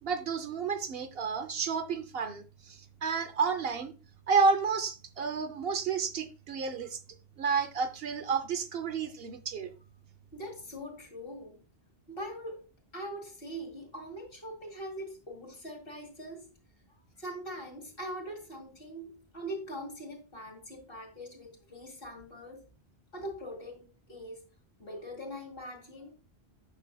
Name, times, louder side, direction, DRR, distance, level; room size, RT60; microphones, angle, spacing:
voice 1, 0.0-3.9 4.3-7.0 7.4-9.7, right 5 dB, 65° right, 0.9 m, -30 dB
voice 2, 10.3-11.6 12.1-12.7 12.9-16.5 17.2-22.6 23.1-24.5 24.8-26.1, equal, 60° left, 2.4 m, -42 dB
9.0 x 6.1 x 2.2 m
omnidirectional pair, 1.1 m